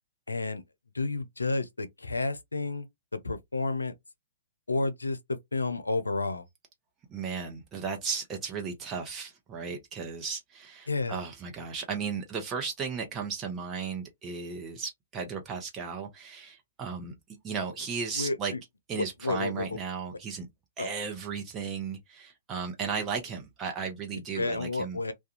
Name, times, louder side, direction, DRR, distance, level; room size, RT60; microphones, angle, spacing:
voice 1, 0.3-0.6 0.9-2.9 3.1-3.9 4.7-5.2 5.5-6.4 10.9-11.2 18.2-18.6 18.9-19.7 20.8-20.9 24.4-25.1, left 3 dB, 90° left, 0.4 m, -31 dB
voice 2, 7.1-17.1 17.4-18.5 18.9-20.5 20.8-25.0, right 5 dB, 20° right, 0.7 m, -35 dB
2.4 x 2.2 x 2.8 m
hypercardioid pair, 120°, 0 cm